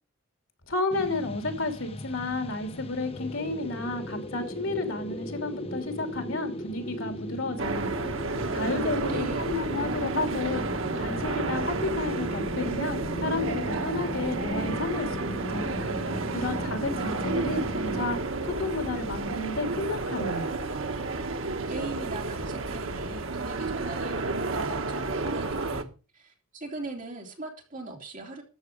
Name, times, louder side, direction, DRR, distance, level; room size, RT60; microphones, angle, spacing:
voice 1, 0.7-7.9 8.5-10.7 11.0-15.2 15.5-15.7 16.3-18.2 18.5-20.5, left 3 dB, 70° left, 6 dB, 2.9 m, -32 dB
sound 1, 0.9-18.3, left 1 dB, 30° left, 0.8 m, -37 dB
sound 2, 7.6-25.8, right 3 dB, 65° right, 1.3 m, -31 dB
voice 2, 8.5-9.6 21.7-28.4, right 2 dB, 40° right, 1 dB, 3.2 m, -40 dB
13.5 x 8.1 x 5.2 m, 0.33 s
head